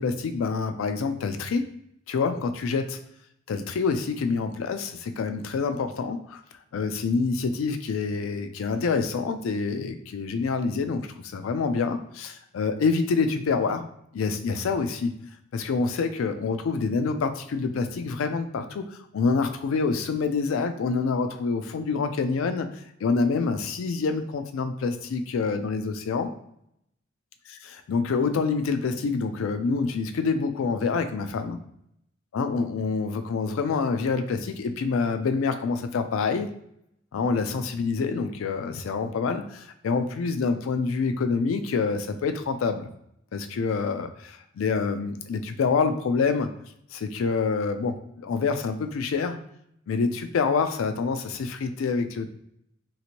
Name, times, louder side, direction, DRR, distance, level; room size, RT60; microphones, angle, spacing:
voice 1, 0.0-1.6 2.1-3.0 3.5-6.4 6.7-13.9 14.1-15.2 15.5-22.7 23.0-26.3 27.5-31.6 32.3-36.5 37.1-42.9 43.3-46.5 46.9-49.4 49.9-52.3, left 4 dB, 75° left, 8 dB, 0.3 m, -27 dB
2.8 x 2.5 x 2.9 m, 0.74 s
head